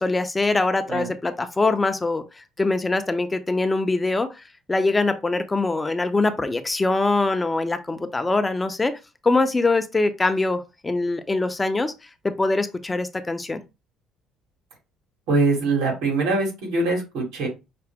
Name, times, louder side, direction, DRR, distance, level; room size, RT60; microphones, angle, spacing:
voice 1, 0.0-4.3 4.7-11.9 12.2-13.6, left 3 dB, 20° left, 0.5 m, -23 dB
voice 2, 15.3-17.5, right 3 dB, 85° right, 2.5 m, -23 dB
5.8 x 2.1 x 3.5 m
cardioid pair, 95°, 0 cm